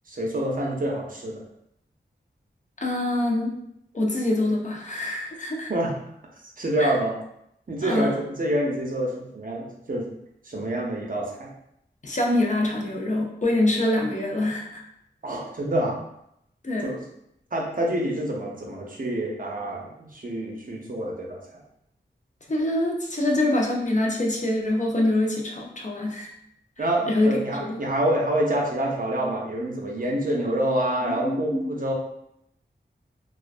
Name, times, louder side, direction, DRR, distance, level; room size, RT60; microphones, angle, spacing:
voice 1, 0.1-1.4 5.7-5.9 6.6-7.2 7.7-10.1 10.4-11.5 15.2-16.0 16.8-17.0 17.5-21.4 26.8-31.9, right 1 dB, 45° right, -2 dB, 0.6 m, -27 dB
voice 2, 2.8-3.5 3.9-5.7 6.8-6.9 7.8-8.2 12.0-14.8 16.6-16.9 22.5-26.3 26.8-27.8 31.0-31.7, left 1 dB, 40° left, -1 dB, 0.5 m, -25 dB
2.4 x 2.1 x 2.4 m, 0.78 s
wide cardioid pair, 55°, 19 cm